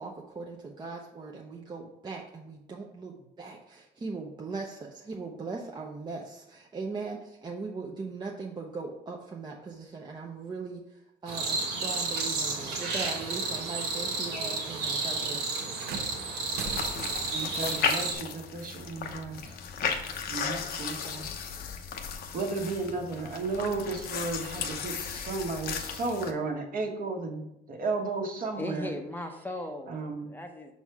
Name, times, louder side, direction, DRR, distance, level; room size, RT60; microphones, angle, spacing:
voice 1, 0.0-10.8 11.2-15.7, right 4 dB, 25° right, -1 dB, 0.7 m, -39 dB
sound 1, 11.3-18.1, right 3 dB, 90° right, 1.3 m, -32 dB
sound 2, 15.7-17.3 18.8-18.9 19.8-19.9, right 6 dB, 70° right, 0.8 m, -41 dB
sound 3, 16.5-26.3, left 6 dB, 60° left, 0.8 m, -35 dB
voice 2, 17.3-19.6 20.3-21.3 22.3-28.9 29.9-30.3, right 3 dB, 55° right, 2 dB, 1.4 m, -34 dB
voice 3, 28.6-30.0 30.3-30.7, left 1 dB, 10° left, 3 dB, 0.7 m, -37 dB
6.1 x 4.1 x 4.7 m, 0.85 s
cardioid pair, 110°, 17 cm